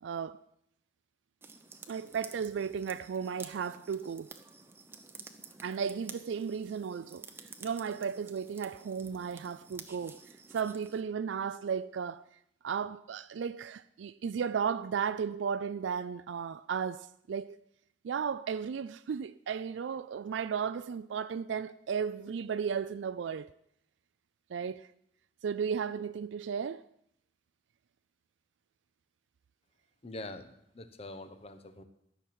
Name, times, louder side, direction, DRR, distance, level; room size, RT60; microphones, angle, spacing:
voice 1, 0.0-0.4 1.9-4.3 5.6-7.3 7.6-10.2 10.5-12.3 12.6-17.6 18.0-23.5 24.5-24.9 25.4-26.8, right 6 dB, 80° right, 0.4 m, -34 dB
sound 1, 1.4-11.0, right 4 dB, 10° right, 0.8 m, -51 dB
voice 2, 30.0-31.8, left 2 dB, 35° left, 0.9 m, -44 dB
13.0 x 6.0 x 8.7 m
head